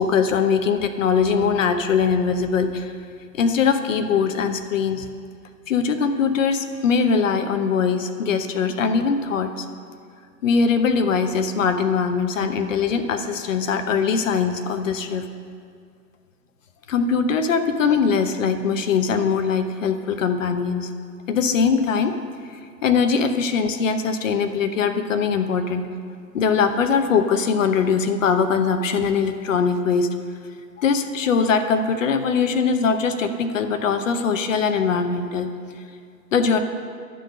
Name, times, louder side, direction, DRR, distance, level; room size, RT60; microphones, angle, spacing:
voice 1, 0.0-2.9 3.3-5.1 5.7-9.7 10.4-15.3 16.9-20.9 21.3-22.2 22.8-25.9 26.3-30.1 30.8-35.5 36.3-36.6, left 5 dB, 50° left, 8 dB, 0.8 m, -21 dB
11.5 x 3.9 x 6.4 m, 2.2 s
hypercardioid pair, 140°, 49 cm